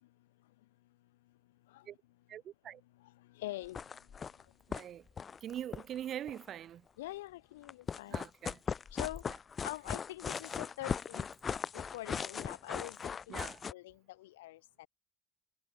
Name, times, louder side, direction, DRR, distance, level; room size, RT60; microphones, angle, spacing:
voice 1, 2.3-2.8 4.7-5.1 5.4-6.8 8.1-8.6 13.3-13.6, right 10 dB, 55° right, 0.5 m, -43 dB
voice 2, 3.3-3.8 7.0-8.2 8.9-9.2 9.6-11.3 11.7-14.9, left 17 dB, 90° left, 1.3 m, -44 dB
sound 1, 3.6-4.4 4.7-4.8 5.1-6.5 7.6-13.7, left 6 dB, 35° left, 1.3 m, -38 dB
hypercardioid pair, 75°, 0 cm